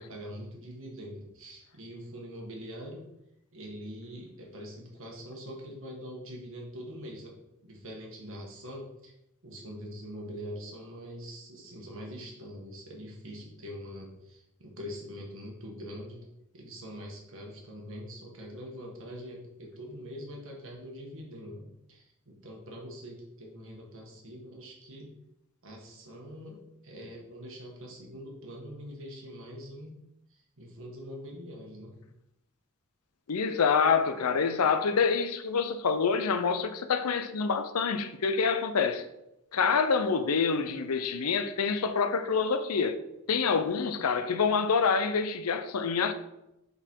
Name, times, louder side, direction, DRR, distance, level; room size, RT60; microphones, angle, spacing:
voice 1, 0.0-3.0 3.5-7.4 7.6-9.1 9.4-16.3 16.5-25.1 25.6-29.9 30.3-32.0, equal, 65° right, 1.5 m, -43 dB
voice 2, 33.3-39.0 39.5-43.0 43.3-46.1, left 5 dB, 85° left, 0.6 m, -26 dB
6.7 x 4.0 x 4.5 m
head